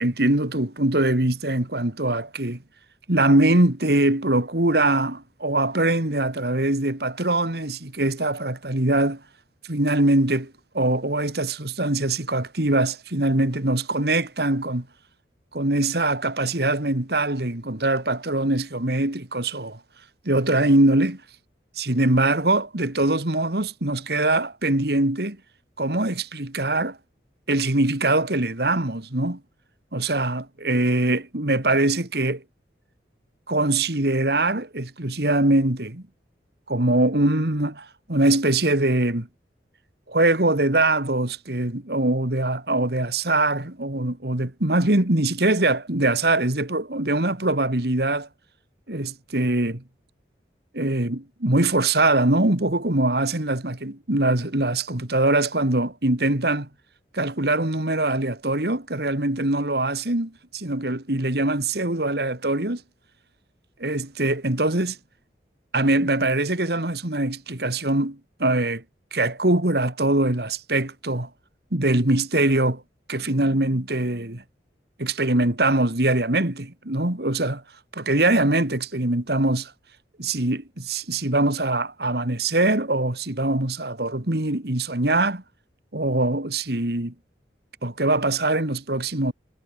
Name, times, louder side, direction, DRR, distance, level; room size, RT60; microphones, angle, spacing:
voice 1, 0.0-2.6 3.1-9.2 9.7-14.9 15.5-19.8 20.3-21.2 21.8-25.4 25.8-27.0 27.5-29.4 29.9-32.4 33.5-36.0 36.7-39.3 40.1-48.3 48.9-49.8 50.7-56.7 57.1-62.8 63.8-65.0 65.7-68.8 69.1-71.3 71.7-72.8 73.1-74.4 75.0-77.6 77.9-79.7 80.2-85.4 85.9-87.1 87.8-89.3, right 2 dB, 60° right, 2.4 m, -22 dB
head